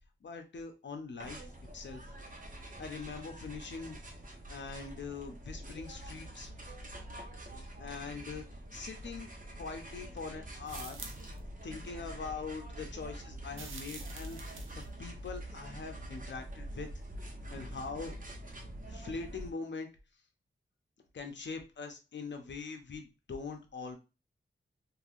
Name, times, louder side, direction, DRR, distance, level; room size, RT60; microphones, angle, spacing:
voice 1, 0.2-1.4 1.7-2.1 2.8-4.0 4.5-6.5 7.8-8.4 8.7-9.3 9.6-11.0 11.6-14.4 15.0-16.9 17.5-18.1 18.9-19.9 21.1-24.0, left 4 dB, 65° left, 5 dB, 0.7 m, -42 dB
sound 1, 1.2-19.5, right 1 dB, 40° right, 0.9 m, -46 dB
sound 2, 10.7-11.4 13.5-14.9, right 4 dB, 85° right, 0.6 m, -47 dB
3.3 x 2.6 x 2.5 m, 0.30 s
cardioid pair, 60°, 20 cm